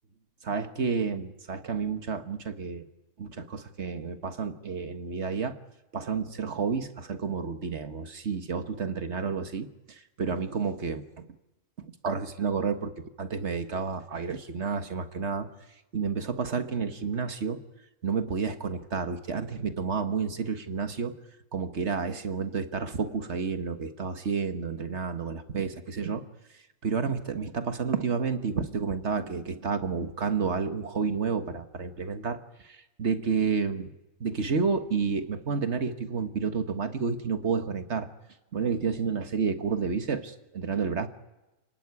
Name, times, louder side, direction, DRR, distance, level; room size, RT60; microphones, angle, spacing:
voice 1, 0.4-2.8 3.2-5.5 5.9-11.3 11.8-12.9 13.2-15.5 15.9-17.6 18.0-21.1 21.5-26.2 26.8-33.9 34.2-38.1 38.5-41.1, right 5 dB, 55° right, 9 dB, 1.7 m, -30 dB
29.5 x 18.5 x 9.8 m, 1.0 s
omnidirectional pair, 1.4 m